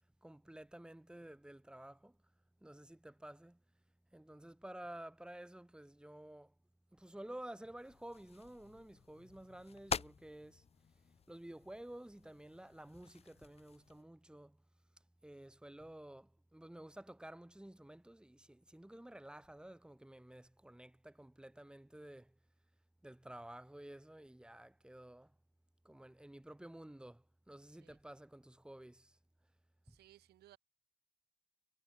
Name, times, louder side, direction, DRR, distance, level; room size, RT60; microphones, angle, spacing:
voice 1, 0.2-2.2 2.6-3.6 4.1-6.5 6.9-10.6 11.3-14.6 15.2-22.4 23.0-25.3 25.8-29.2 29.9-30.0, right 1 dB, 5° right, 6.8 m, -52 dB
sound 1, 7.8-14.0, left 6 dB, 35° left, 5.0 m, -47 dB
voice 2, 29.8-30.6, right 14 dB, 70° right, 4.7 m, -63 dB
cardioid pair, 110°, 17 cm